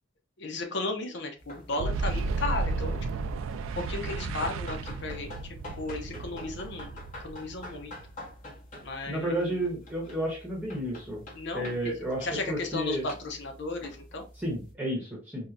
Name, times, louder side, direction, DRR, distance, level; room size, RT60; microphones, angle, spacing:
voice 1, 0.4-3.0 3.8-7.9 8.8-9.6 11.3-11.9 12.2-14.2, left 2 dB, 60° left, 4 dB, 0.6 m, -35 dB
sound 1, 1.4-14.7, left 1 dB, 40° left, 1.1 m, -47 dB
Boom, 1.8-8.3, right 3 dB, 85° right, 0.3 m, -33 dB
voice 2, 9.1-11.2 11.5-13.1 14.4-15.5, right 1 dB, 5° right, -4 dB, 1.0 m, -32 dB
4.4 x 2.1 x 2.5 m, 0.33 s
head